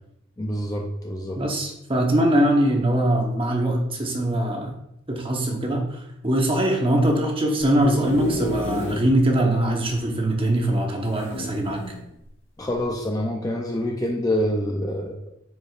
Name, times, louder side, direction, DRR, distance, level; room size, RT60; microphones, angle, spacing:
voice 1, 0.4-1.4 12.6-15.3, left 1 dB, 15° left, 1 dB, 0.4 m, -26 dB
voice 2, 1.4-4.8 5.1-11.9, right 1 dB, 25° right, 1 dB, 1.0 m, -22 dB
sound 1, 7.6-9.1 9.6-9.7 9.9-10.0 11.1-12.0 12.7-12.9, left 1 dB, 65° left, 1.2 m, -31 dB
9.0 x 5.0 x 2.4 m, 0.81 s
head